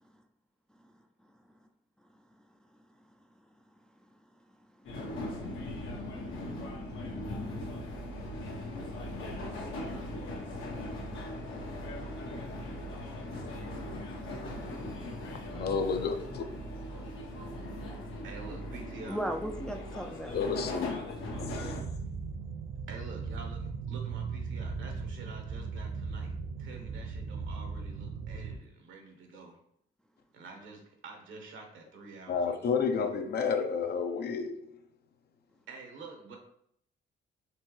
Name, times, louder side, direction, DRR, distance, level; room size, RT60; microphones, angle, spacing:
sound 1, 4.8-21.8, left 1 dB, 80° left, 1.1 m, -39 dB
voice 1, 9.4-9.8 18.2-19.2 22.9-26.3 26.6-29.6 30.3-32.7 35.7-36.4, right 3 dB, 75° right, 1.3 m, -48 dB
voice 2, 15.2-16.4 20.3-21.8 32.3-34.7, left 5 dB, 55° left, 0.6 m, -31 dB
voice 3, 19.1-20.3, right 1 dB, 5° left, 0.4 m, -35 dB
sound 2, 21.3-28.6, right 5 dB, 50° right, 0.5 m, -38 dB
4.5 x 3.4 x 3.2 m
cardioid pair, 90°, 20 cm